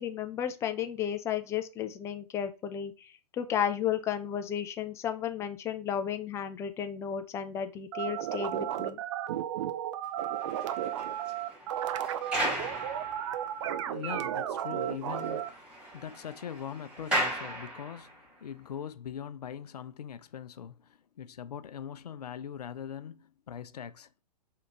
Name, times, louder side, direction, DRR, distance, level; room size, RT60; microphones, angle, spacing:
voice 1, 0.0-2.9 3.4-9.0, left 9 dB, 15° left, 0.3 m, -33 dB
sound 1, 7.9-15.5, right 11 dB, 45° right, 0.5 m, -33 dB
sound 2, 10.2-13.7 14.2-14.3 14.6-14.7 15.0-18.3, right 1 dB, 5° right, 2.1 m, -36 dB
voice 2, 13.5-24.1, left 8 dB, 70° left, 0.5 m, -42 dB
3.7 x 2.8 x 4.5 m
figure-of-eight pair, 115°, 21 cm